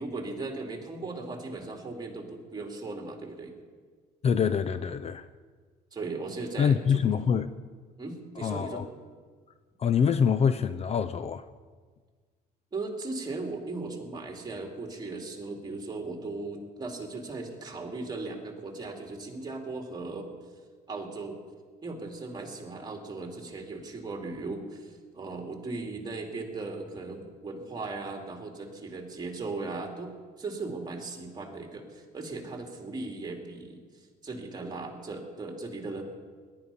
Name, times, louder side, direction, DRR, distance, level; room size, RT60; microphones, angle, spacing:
voice 1, 0.0-3.5 5.9-7.0 8.0-8.8 12.7-20.3 20.9-21.4 21.8-30.1 30.4-36.0, right 3 dB, 25° right, 2.8 m, -37 dB
voice 2, 4.2-5.3 6.6-7.5 8.4-8.9 9.8-11.5, left 7 dB, 40° left, 0.5 m, -25 dB
18.0 x 11.5 x 5.5 m
cardioid pair, 110°, 17 cm